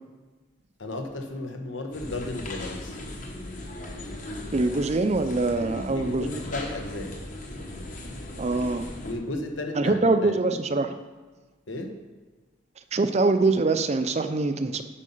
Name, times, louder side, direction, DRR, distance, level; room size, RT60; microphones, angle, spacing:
voice 1, 0.8-3.0 5.9-7.2 9.0-10.3 11.7-12.0, left 2 dB, 85° left, 4 dB, 1.1 m, -34 dB
sound 1, 1.9-9.1, left 1 dB, 40° left, 1.2 m, -37 dB
voice 2, 4.5-6.3 8.4-8.9 9.8-10.9 12.9-14.8, right 3 dB, 35° right, 9 dB, 0.5 m, -24 dB
8.4 x 5.4 x 5.5 m, 1.3 s
head